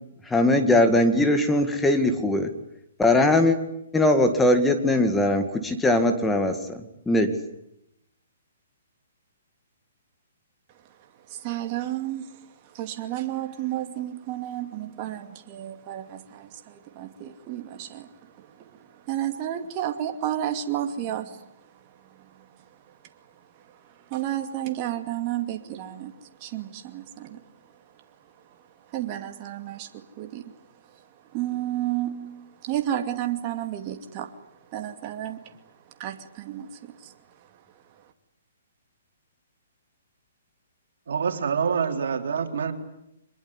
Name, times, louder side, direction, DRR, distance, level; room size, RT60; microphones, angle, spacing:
voice 1, 0.3-2.5 3.0-3.6 3.9-7.3, left 1 dB, 10° left, 7 dB, 2.1 m, -21 dB
voice 2, 11.3-12.3 12.8-38.0, right 12 dB, 35° right, 5 dB, 2.5 m, -33 dB
voice 3, 41.1-42.7, right 6 dB, 75° right, 5 dB, 3.7 m, -26 dB
24.5 x 21.5 x 9.9 m, 0.80 s
hypercardioid pair, 145°, 0 cm